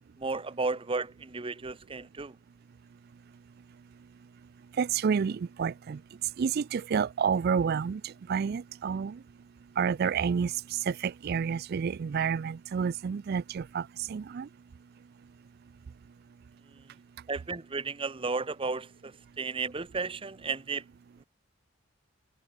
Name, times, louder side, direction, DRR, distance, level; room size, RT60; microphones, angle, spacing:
voice 1, 0.2-2.3 17.3-20.8, right 4 dB, 25° right, 0.8 m, -33 dB
voice 2, 4.8-6.0 6.4-9.2 9.8-14.5, right 6 dB, 50° right, 0.3 m, -29 dB
head